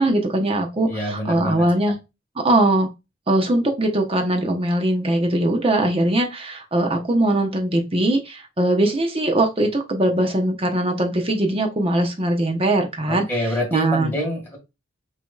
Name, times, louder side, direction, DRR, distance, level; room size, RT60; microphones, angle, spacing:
voice 1, 0.0-2.0 2.4-2.9 3.3-13.2 13.7-14.1, right 1 dB, 30° right, 3 dB, 0.9 m, -21 dB
voice 2, 0.9-1.7 13.1-14.6, equal, 10° left, -2 dB, 1.9 m, -26 dB
6.0 x 3.0 x 2.4 m, 0.24 s
head